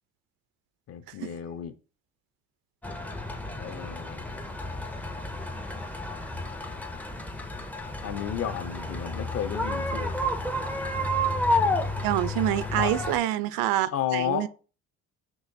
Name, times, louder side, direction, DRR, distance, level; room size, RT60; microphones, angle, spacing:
voice 1, 0.9-1.7 3.5-4.4 8.0-10.1 12.8-12.9 13.9-14.5, left 9 dB, 45° left, 0.6 m, -32 dB
sound 1, 2.8-13.2, left 1 dB, 5° left, 0.4 m, -31 dB
voice 2, 12.0-14.5, right 14 dB, 85° right, 0.5 m, -26 dB
6.2 x 3.0 x 2.7 m
cardioid pair, 150°, 34 cm